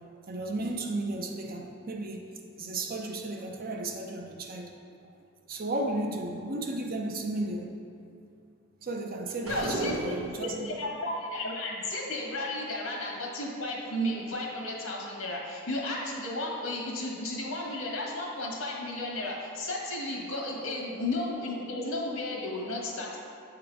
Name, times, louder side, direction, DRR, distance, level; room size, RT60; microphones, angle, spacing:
voice 1, 0.3-2.3 2.6-4.7 5.5-7.8 8.8-10.7 12.4-12.5, right 2 dB, 45° right, 2 dB, 0.6 m, -34 dB
voice 2, 9.4-23.2, left 1 dB, 80° left, -2 dB, 1.5 m, -34 dB
sound 1, 9.5-10.5, right 1 dB, 90° right, 1.0 m, -33 dB
8.6 x 3.8 x 4.6 m, 2.6 s
head